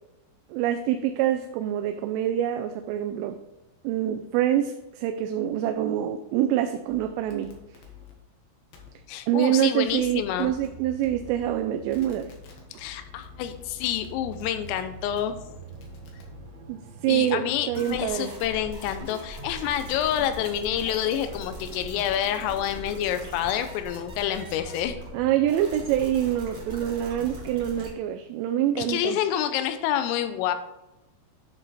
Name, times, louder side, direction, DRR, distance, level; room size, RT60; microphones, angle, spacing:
voice 1, 0.5-3.4 3.8-7.6 9.3-12.3 16.7-18.3 25.1-29.2, right 11 dB, 85° right, 7 dB, 3.0 m, -26 dB
sound 1, 6.9-8.1 8.7-8.9 9.9-10.7 11.0-11.6 11.9-16.6, left 10 dB, 65° left, 2.6 m, -49 dB
sound 2, 8.8-25.5, right 5 dB, 70° right, 3.5 m, -48 dB
voice 2, 9.1-10.5 12.8-15.4 17.1-25.0 28.8-30.5, left 10 dB, 85° left, 9 dB, 3.3 m, -28 dB
sound 3, 17.7-27.9, equal, 45° right, 0.6 m, -40 dB
9.9 x 5.3 x 4.1 m, 0.97 s
omnidirectional pair, 5.8 m